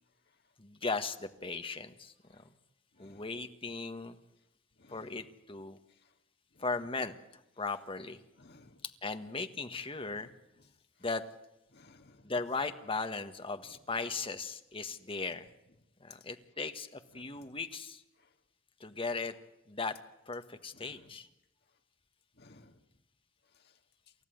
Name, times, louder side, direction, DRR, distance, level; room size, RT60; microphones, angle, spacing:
voice 1, 0.6-2.4 3.0-4.2 4.9-5.8 6.6-7.2 7.6-8.2 9.0-10.3 11.0-11.2 12.2-15.5 16.0-18.0 18.8-19.3 19.7-20.0 20.3-21.3, left 3 dB, 30° left, 8 dB, 1.5 m, -37 dB
voice 2, 8.4-8.7 11.7-12.2 17.2-17.5 20.8-21.0 22.4-22.7, left 2 dB, 55° left, 6 dB, 2.0 m, -58 dB
29.0 x 14.0 x 9.4 m, 0.90 s
head